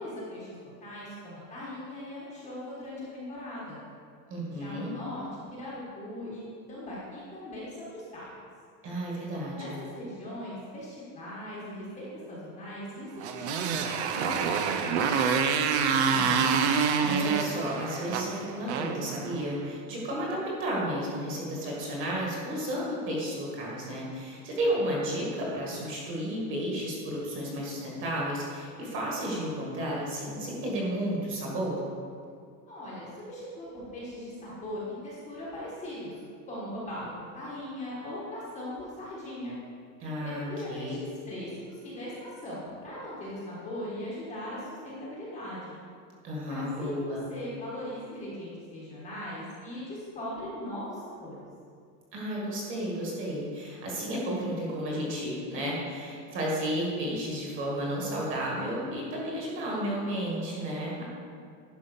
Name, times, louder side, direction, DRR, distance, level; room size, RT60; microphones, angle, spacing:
voice 1, 0.0-3.8 4.5-6.4 6.7-8.3 9.5-15.2 32.7-36.2 36.5-37.1 37.3-39.6 40.2-45.8 46.5-47.0 47.3-51.4, left 1 dB, 15° left, -7 dB, 1.4 m, -39 dB
voice 2, 4.3-4.9 8.8-9.8 15.9-16.5 16.8-31.8 40.0-40.9 46.2-47.3 52.1-61.0, equal, 25° right, -4 dB, 1.7 m, -32 dB
Motorcycle, 13.2-19.7, right 6 dB, 45° right, 0.6 m, -27 dB
11.0 x 5.5 x 5.2 m, 2.2 s
supercardioid pair, 180°, 50 cm